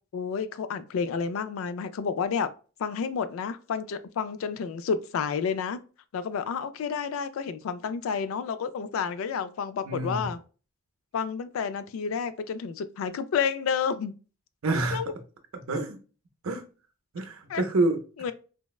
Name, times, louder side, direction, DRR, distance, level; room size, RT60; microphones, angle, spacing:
voice 1, 0.1-2.5 2.8-5.8 6.1-10.4 11.1-14.1 14.9-15.1 17.5-17.7 18.2-18.3, left 6 dB, 75° left, 0.3 m, -30 dB
voice 2, 9.8-10.3 14.6-15.0 15.7-16.0 16.4-16.6 17.1-18.0, right 2 dB, 80° right, 0.6 m, -27 dB
3.3 x 2.1 x 2.3 m
head